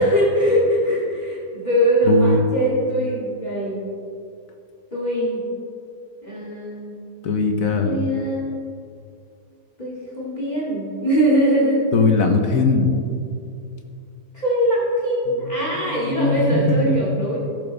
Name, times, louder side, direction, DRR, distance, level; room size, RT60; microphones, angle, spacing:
voice 1, 0.0-3.8 4.9-5.4 6.2-7.0 7.8-8.6 9.8-11.9 14.3-17.4, equal, 25° left, -6 dB, 2.2 m, -21 dB
voice 2, 2.0-2.4 7.2-8.0 11.9-12.9 15.3-15.4 15.7-17.0, left 3 dB, 55° left, 4 dB, 1.3 m, -20 dB
17.5 x 6.9 x 3.4 m, 2.4 s
omnidirectional pair, 1.8 m